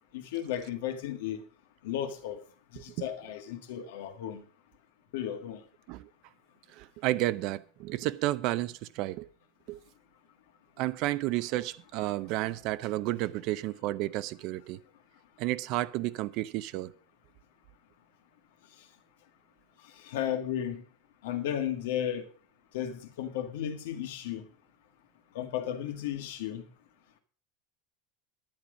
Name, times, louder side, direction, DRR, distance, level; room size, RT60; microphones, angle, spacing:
voice 1, 0.1-1.4 1.8-2.4 2.7-4.4 5.1-5.6 20.0-20.8 21.2-22.3 22.7-24.5 25.3-26.6, left 10 dB, 90° left, 1.8 m, -34 dB
voice 2, 6.7-9.3 9.7-9.8 10.8-14.8 15.4-16.9, right 16 dB, 50° right, 0.5 m, -31 dB
10.5 x 10.0 x 5.1 m
supercardioid pair, 165°, 0 cm